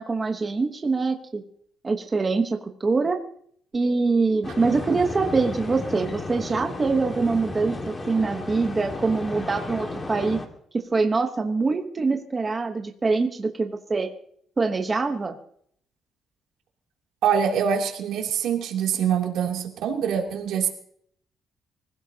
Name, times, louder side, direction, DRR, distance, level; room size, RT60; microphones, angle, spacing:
voice 1, 0.0-1.4 1.8-3.2 3.7-10.4 10.9-14.1 14.6-15.4, right 4 dB, 20° right, 4 dB, 1.1 m, -24 dB
sound 1, 4.4-10.5, left 2 dB, 20° left, 1.9 m, -33 dB
voice 2, 17.2-20.7, right 8 dB, 85° right, 1 dB, 3.0 m, -24 dB
25.0 x 16.5 x 2.9 m, 0.65 s
cardioid pair, 160°, 0 cm